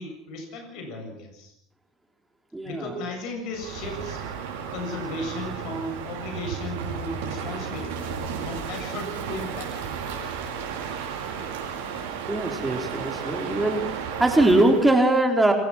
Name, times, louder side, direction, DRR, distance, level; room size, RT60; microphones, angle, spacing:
voice 1, 0.0-1.5 2.6-4.2 4.7-8.1 8.4-9.9, left 2 dB, 60° left, 5 dB, 7.4 m, -35 dB
voice 2, 2.5-2.9 12.3-13.8 14.2-15.5, right 2 dB, 10° right, 3 dB, 4.1 m, -21 dB
Crow, 3.5-14.9, right 7 dB, 75° right, 6.1 m, -33 dB
27.0 x 16.5 x 6.1 m, 0.74 s
hypercardioid pair, 80°, 0 cm